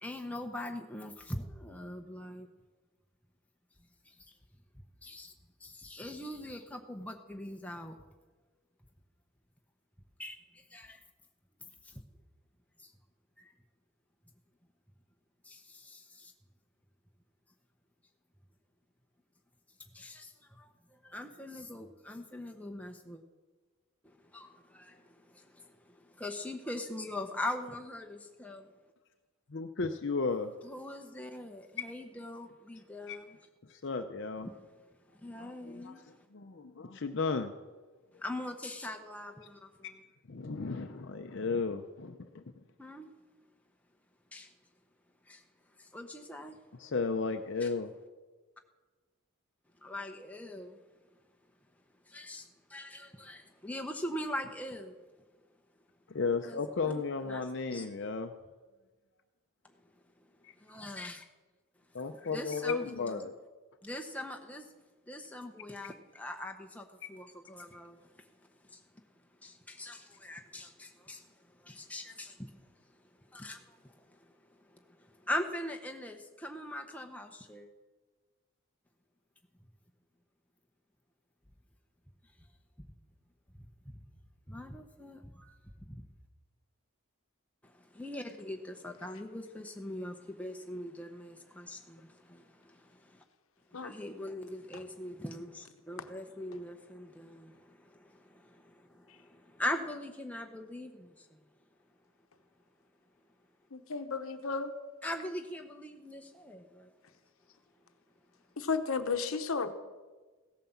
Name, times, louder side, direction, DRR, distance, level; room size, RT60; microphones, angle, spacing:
voice 1, 0.0-2.5 4.1-4.2 4.7-5.3 5.6-8.0 10.2-11.0 11.8-12.0 12.8-12.9 13.4-13.5 15.4-16.3 19.9-23.2 24.0-28.7 30.6-33.4 34.4-34.5 35.1-36.3 38.1-40.0 42.8-43.1 44.3-44.5 45.3-45.4 45.8-46.6 47.6-47.7 49.8-50.8 52.1-55.0 56.4-57.9 59.6-59.7 60.2-60.3 60.6-61.3 62.2-63.2 63.8-64.7 65.1-69.0 69.4-77.7 82.8-82.9 83.5-84.0 84.5-86.0 87.6-93.2 93.7-101.4 105.0-106.9, left 1 dB, 5° left, 3 dB, 0.8 m, -42 dB
voice 2, 29.5-30.5 33.1-33.2 33.7-34.5 35.4-37.5 40.3-42.4 46.8-47.9 56.1-58.3 60.4-60.5 61.9-63.3, left 4 dB, 55° left, 6 dB, 0.6 m, -34 dB
voice 3, 103.7-104.7 108.6-109.7, left 4 dB, 70° left, 9 dB, 0.9 m, -33 dB
16.0 x 9.2 x 7.1 m, 1.3 s
head